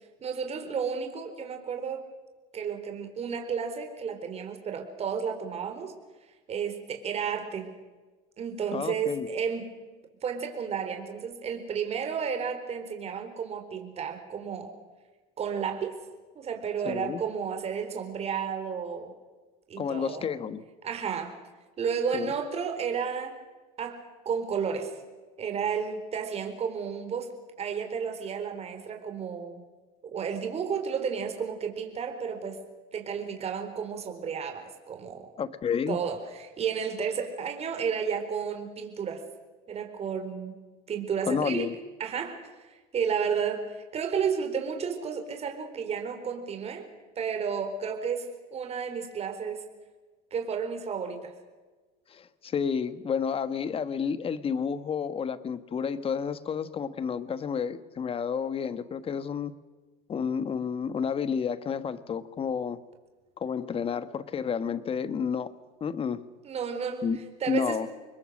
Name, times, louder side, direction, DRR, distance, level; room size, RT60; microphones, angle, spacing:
voice 1, 0.2-2.1 2.5-5.9 6.5-7.7 8.4-9.7 10.2-14.7 15.4-16.0 16.4-19.1 19.7-20.2 20.8-21.3 21.8-23.3 23.8-24.9 25.4-27.3 27.6-29.6 30.0-32.6 32.9-35.3 35.9-39.2 39.7-40.6 40.9-41.7 42.0-46.9 47.2-49.6 50.3-51.3 66.4-67.1 67.4-67.8, right 6 dB, 35° right, 4 dB, 4.4 m, -32 dB
voice 2, 8.7-9.3 16.8-17.2 19.8-20.6 22.1-22.3 35.4-36.0 41.3-41.8 52.1-59.5 60.1-62.8 63.4-65.5 65.8-66.2 67.0-67.2 67.5-67.9, left 6 dB, 30° left, 13 dB, 1.4 m, -30 dB
27.0 x 21.5 x 6.5 m, 1.3 s
supercardioid pair, 120°, 19 cm